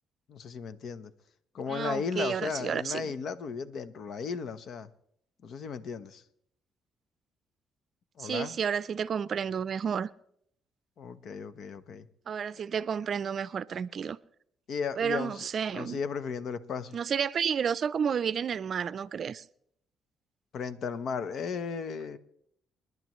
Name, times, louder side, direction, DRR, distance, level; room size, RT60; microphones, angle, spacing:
voice 1, 0.3-1.1 1.5-4.9 5.4-6.2 8.2-8.6 11.0-12.1 14.7-15.5 15.7-17.0 20.5-22.2, left 6 dB, 65° left, 0.9 m, -35 dB
voice 2, 1.7-3.1 8.2-10.1 12.3-14.2 15.0-16.0 16.9-19.4, right 7 dB, 55° right, 0.5 m, -31 dB
28.5 x 11.0 x 3.1 m
cardioid pair, 90°, 0 cm